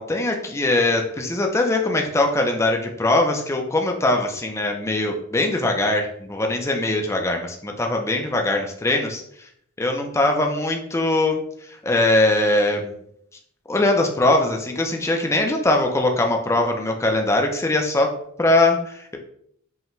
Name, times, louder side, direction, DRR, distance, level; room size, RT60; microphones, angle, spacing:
voice 1, 0.0-9.5 9.8-12.9 13.7-18.1 18.4-19.2, left 2 dB, 15° left, 2 dB, 0.4 m, -21 dB
5.6 x 2.2 x 3.0 m, 0.68 s
head